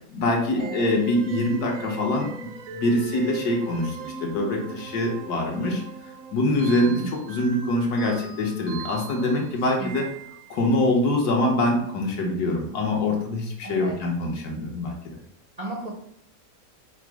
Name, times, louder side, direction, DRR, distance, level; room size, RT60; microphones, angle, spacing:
voice 1, 0.1-5.8 6.3-7.0 7.3-10.1 10.5-15.0, left 1 dB, 70° left, 0 dB, 1.4 m, -24 dB
sound 1, 0.6-10.8, right 4 dB, 70° right, 0.9 m, -40 dB
voice 2, 6.6-7.1 9.6-9.9 13.6-14.0 15.6-15.9, right 2 dB, 50° right, -3 dB, 0.4 m, -35 dB
5.0 x 2.1 x 4.6 m, 0.66 s
omnidirectional pair, 1.8 m